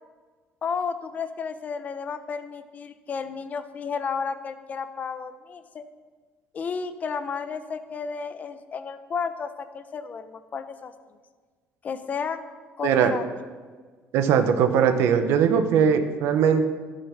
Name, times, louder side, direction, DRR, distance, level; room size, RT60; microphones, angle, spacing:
voice 1, 0.6-5.8 6.5-10.9 11.8-12.4 12.8-13.2, left 6 dB, 35° left, 10 dB, 0.8 m, -32 dB
voice 2, 14.1-16.6, right 7 dB, 75° right, 8 dB, 1.1 m, -20 dB
13.0 x 6.7 x 5.9 m, 1.5 s
cardioid pair, 115°, 5 cm